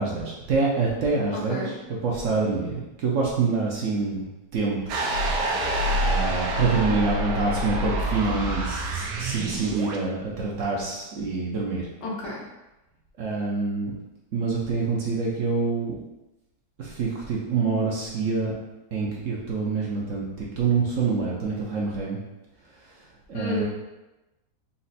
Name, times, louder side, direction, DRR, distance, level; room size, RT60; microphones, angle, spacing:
voice 1, 0.0-4.2 4.5-5.0 6.0-11.9 13.2-13.9 14.3-15.9 16.8-18.5 18.9-22.2 22.7-23.6, right 4 dB, 60° right, -3 dB, 0.9 m, -26 dB
sound 1, 4.9-10.0, right 1 dB, 85° right, 1.2 m, -26 dB
voice 2, 12.0-12.4 23.3-23.6, left 1 dB, 80° left, -5 dB, 1.8 m, -30 dB
4.2 x 2.5 x 4.0 m, 1.0 s
omnidirectional pair, 1.8 m